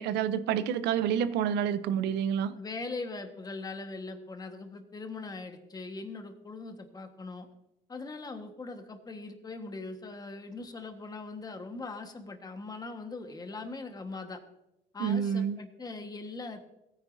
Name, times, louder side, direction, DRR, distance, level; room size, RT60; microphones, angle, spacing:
voice 1, 0.0-2.5 15.0-15.6, right 8 dB, 85° right, 14 dB, 0.7 m, -28 dB
voice 2, 2.5-7.5 7.9-14.4 14.9-16.6, left 3 dB, 25° left, 6 dB, 1.4 m, -41 dB
17.0 x 9.5 x 2.7 m, 0.91 s
cardioid pair, 110°, 17 cm